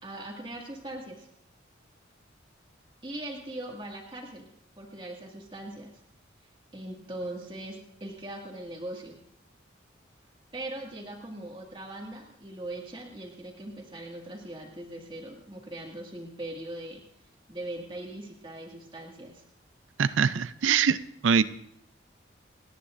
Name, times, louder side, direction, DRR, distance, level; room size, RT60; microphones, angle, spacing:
voice 1, 0.0-1.3 3.0-4.5 4.7-5.9 6.7-9.2 10.5-17.0 17.5-19.4, right 1 dB, 25° right, -2 dB, 2.0 m, -40 dB
voice 2, 20.0-21.0 21.2-21.4, right 6 dB, 85° right, 15 dB, 0.5 m, -23 dB
29.5 x 10.0 x 2.6 m, 0.71 s
head